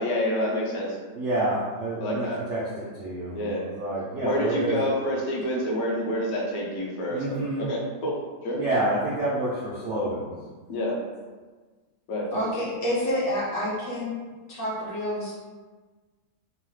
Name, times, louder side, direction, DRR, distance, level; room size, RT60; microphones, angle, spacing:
voice 1, 0.0-1.0 2.0-2.4 3.3-3.6 4.2-8.1 8.4-8.6 10.7-11.0 12.1-12.3, left 1 dB, 70° left, -3 dB, 1.0 m, -28 dB
voice 2, 1.1-4.9 7.1-7.7 8.5-10.3, right 1 dB, 90° right, -5 dB, 0.6 m, -28 dB
voice 3, 12.3-14.2 14.5-15.3, left 1 dB, 45° left, -7 dB, 0.7 m, -28 dB
3.1 x 2.0 x 3.1 m, 1.4 s
omnidirectional pair, 1.8 m